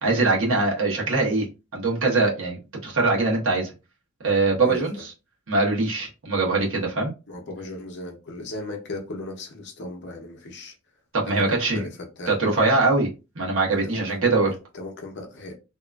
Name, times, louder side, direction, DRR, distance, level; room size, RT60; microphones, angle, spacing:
voice 1, 0.0-1.5 1.7-3.7 4.2-5.1 5.5-7.1 11.1-11.9 12.3-13.1 13.3-14.5, right 3 dB, 60° right, 1.1 m, -22 dB
voice 2, 4.6-5.0 7.3-10.7 11.2-12.4 13.8-15.6, left 2 dB, 50° left, 0.7 m, -37 dB
2.8 x 2.4 x 2.2 m
head